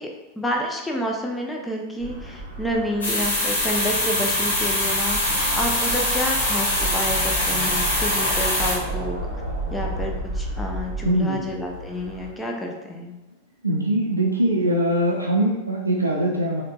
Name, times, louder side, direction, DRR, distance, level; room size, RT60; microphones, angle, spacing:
voice 1, 0.0-9.2 9.7-13.1, equal, 10° left, 1 dB, 0.4 m, -29 dB
sound 1, 2.0-12.3, right 2 dB, 45° right, 0.8 m, -32 dB
sound 2, 3.0-8.7, left 1 dB, 70° left, 0.9 m, -23 dB
voice 2, 11.0-11.4 13.6-16.6, right 1 dB, 85° right, -2 dB, 0.4 m, -22 dB
3.7 x 2.2 x 2.2 m, 1.1 s
figure-of-eight pair, 90°, 0 cm